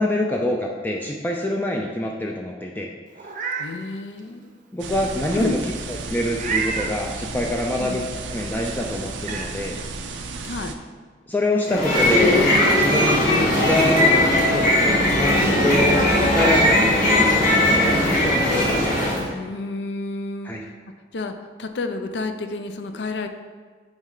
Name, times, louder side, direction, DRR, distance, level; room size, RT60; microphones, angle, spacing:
voice 1, 0.0-2.9 4.7-5.6 6.0-8.0 8.3-9.8 11.3-12.4 12.7-14.2 14.5-16.1 16.3-18.4 20.4-20.6, left 1 dB, 10° left, 0 dB, 0.3 m, -25 dB
Meow, 3.1-3.7 4.2-4.3 6.3-6.9 8.5-8.6 9.2-9.5, right 5 dB, 45° right, 0.7 m, -28 dB
voice 2, 3.6-4.6 5.3-5.6 7.8-8.1 10.4-10.7 11.6-12.0 19.3-20.7 21.1-21.3 21.6-23.3, left 3 dB, 70° left, 7 dB, 0.5 m, -30 dB
sound 1, 4.8-10.7, right 3 dB, 85° right, 0.5 m, -33 dB
sound 2, 11.6-19.3, left 1 dB, 50° left, 1.8 m, -18 dB
8.7 x 3.1 x 3.8 m, 1.5 s
head